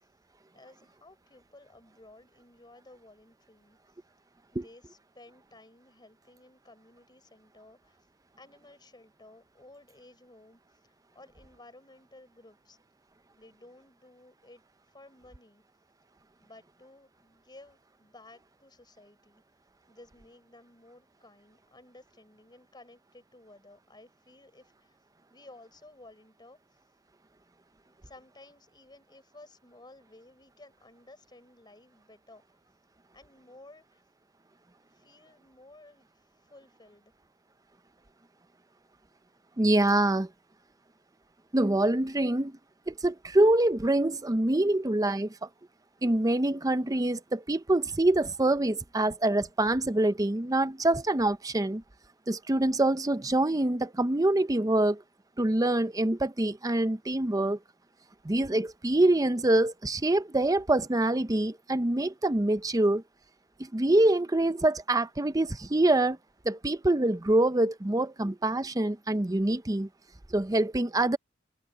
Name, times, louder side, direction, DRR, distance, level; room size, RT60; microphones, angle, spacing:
voice 1, 0.5-3.8 4.5-8.0 8.4-12.8 13.4-14.6 14.9-15.6 16.4-19.4 19.9-25.0 25.3-26.6 27.8-32.4 33.1-34.0 34.9-36.1 36.4-37.1, left 2 dB, 20° left, 6.2 m, -55 dB
voice 2, 39.6-40.3 41.5-42.6 42.9-45.5 46.0-51.8 52.3-55.0 55.4-57.6 58.2-63.0 63.6-66.2 66.4-69.9 70.3-71.2, right 1 dB, 20° right, 0.6 m, -25 dB
head